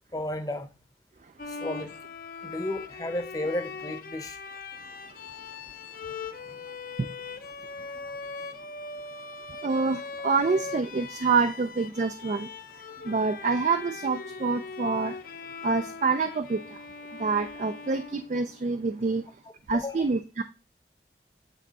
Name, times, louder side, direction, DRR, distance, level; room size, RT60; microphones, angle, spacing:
voice 1, 0.1-0.7 1.5-1.9 2.4-4.4 19.8-20.1, left 1 dB, 20° left, 0.8 m, -33 dB
Bowed string instrument, 1.4-18.8, left 4 dB, 55° left, 0.6 m, -40 dB
voice 2, 9.6-12.5 13.1-15.2 15.6-16.8 17.2-19.2 19.7-20.4, right 4 dB, 45° right, 0.4 m, -27 dB
8.4 x 3.5 x 4.1 m
head